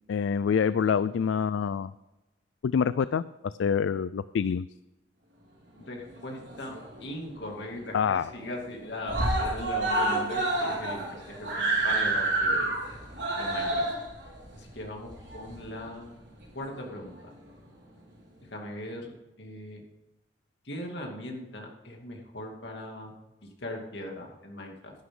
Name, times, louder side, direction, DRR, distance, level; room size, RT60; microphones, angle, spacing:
voice 1, 0.1-1.9 2.6-3.2 3.6-4.7 7.9-8.3, left 6 dB, 80° left, 15 dB, 0.3 m, -26 dB
voice 2, 5.8-6.7 7.0-12.7 13.4-13.9 14.5-16.1 16.5-17.3 18.4-19.8 20.6-23.1 23.4-24.9, left 1 dB, 65° left, 1 dB, 2.6 m, -39 dB
Screaming, 6.2-7.1 7.4-7.5 7.8-7.9 8.2-8.7 9.0-15.9 16.7-16.8, right 2 dB, 75° right, 4.5 m, -29 dB
11.5 x 11.0 x 3.9 m, 1.0 s
head